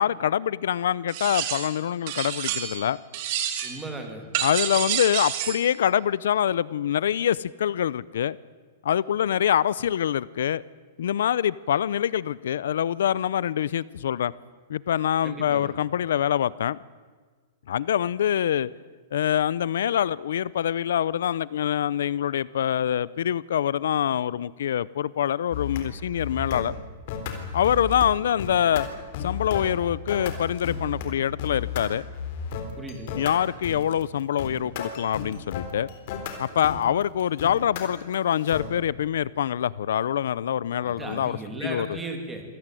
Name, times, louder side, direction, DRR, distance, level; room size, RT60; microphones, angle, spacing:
voice 1, 0.0-3.0 4.4-8.4 8.8-10.6 11.0-14.3 14.7-16.8 17.7-18.7 19.1-26.7 27.5-28.9 29.2-32.0 33.1-35.9 36.4-42.0, left 10 dB, 80° left, 0.7 m, -25 dB
sound 1, 1.1-1.8 2.1-2.9 3.1-3.8 4.3-5.7, right 10 dB, 35° right, 2.7 m, -29 dB
voice 2, 3.6-4.2 15.2-15.7 32.8-33.2 40.8-42.4, right 2 dB, 5° right, 3.0 m, -36 dB
sound 2, 25.5-25.8 26.1-26.7 27.1-28.1 28.4-31.1 31.4-31.8 32.1-38.7, left 6 dB, 40° left, 3.7 m, -33 dB
26.5 x 17.5 x 9.2 m
supercardioid pair, 180°, 0 cm